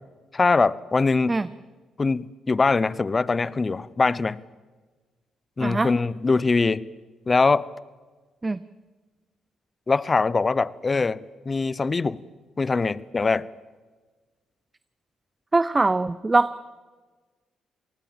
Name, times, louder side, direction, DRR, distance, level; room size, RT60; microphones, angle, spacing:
voice 1, 0.3-1.4 2.0-4.4 5.6-6.9 7.3-7.7 9.9-12.2 12.6-13.5, left 4 dB, 30° left, 20 dB, 0.8 m, -22 dB
voice 2, 5.6-5.9 8.4-8.6 15.5-16.5, right 3 dB, 25° right, 16 dB, 0.7 m, -22 dB
27.0 x 19.5 x 7.4 m, 1.3 s
supercardioid pair, 70°, 0 cm